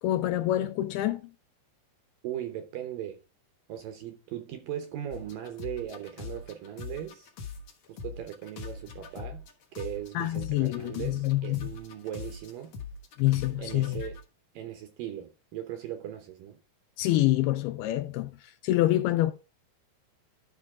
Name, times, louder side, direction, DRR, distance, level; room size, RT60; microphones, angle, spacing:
voice 1, 0.0-1.2 10.2-11.7 13.2-14.0 17.0-18.3 18.6-19.3, left 15 dB, 80° left, 2.4 m, -26 dB
voice 2, 2.2-3.2 3.7-7.3 7.9-9.4 9.7-12.8 13.6-14.2 14.5-16.6, right 11 dB, 70° right, 2.2 m, -38 dB
sound 1, 5.1-7.7 8.0-14.2, left 6 dB, 60° left, 1.9 m, -41 dB
12.0 x 5.4 x 3.6 m
omnidirectional pair, 4.9 m